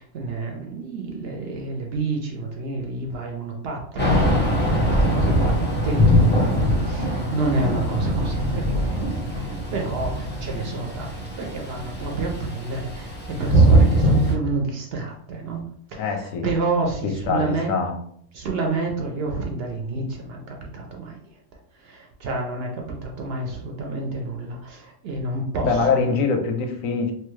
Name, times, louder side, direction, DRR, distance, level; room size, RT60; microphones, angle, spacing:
voice 1, 0.0-15.6 15.9-17.8 18.3-21.2 21.7-26.1, right 3 dB, 60° right, 1 dB, 0.7 m, -29 dB
Thunder / Rain, 4.0-14.3, equal, 15° left, 0.3 m, -21 dB
voice 2, 16.0-16.5 17.0-18.0 25.6-27.1, left 4 dB, 90° left, 4 dB, 1.0 m, -23 dB
2.9 x 2.2 x 3.1 m, 0.65 s
omnidirectional pair, 1.3 m